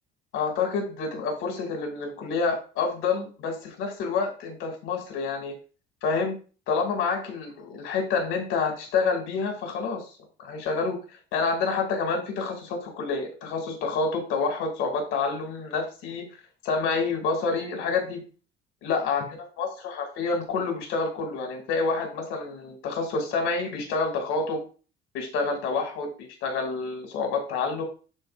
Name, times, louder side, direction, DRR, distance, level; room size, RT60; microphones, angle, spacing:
voice 1, 0.3-5.5 6.0-6.4 6.7-11.0 11.3-16.3 16.6-18.3 18.8-19.2 19.6-24.6 25.1-27.8, left 4 dB, 80° left, 3 dB, 2.4 m, -28 dB
11.5 x 4.2 x 2.5 m, 0.37 s
cardioid pair, 145°, 21 cm